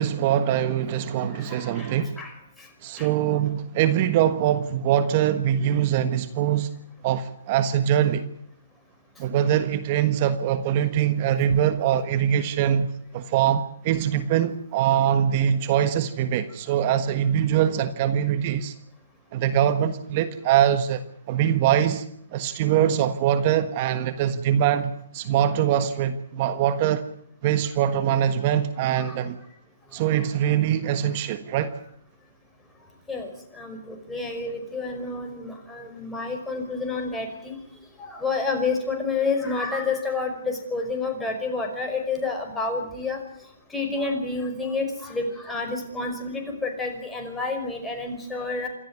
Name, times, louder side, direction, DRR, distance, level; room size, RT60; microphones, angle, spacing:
voice 1, 0.0-2.2 2.8-6.7 7.0-8.2 9.2-12.9 13.1-18.7 19.3-21.0 21.3-22.0 22.3-27.0 27.4-29.4 29.9-31.8, right 10 dB, 40° right, 11 dB, 1.4 m, -23 dB
voice 2, 1.1-2.3 2.6-2.7 3.0-3.1 29.0-29.2 33.1-37.6 38.0-43.2 43.7-48.7, left 3 dB, 5° left, 2 dB, 5.4 m, -29 dB
28.0 x 13.0 x 9.6 m, 0.70 s
hypercardioid pair, 140°, 0 cm